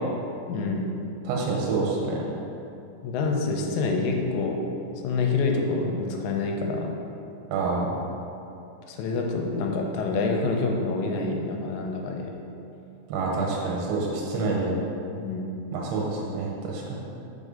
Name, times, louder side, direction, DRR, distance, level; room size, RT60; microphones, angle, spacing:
voice 1, 0.5-0.9 3.0-4.6 5.0-7.0 8.9-12.4 15.2-15.4, left 3 dB, 90° left, 1 dB, 2.8 m, -27 dB
voice 2, 1.2-2.2 7.5-8.0 13.1-14.7 15.7-17.0, right 3 dB, 75° right, -3 dB, 2.6 m, -27 dB
6.2 x 5.3 x 3.7 m, 2.8 s
omnidirectional pair, 5.1 m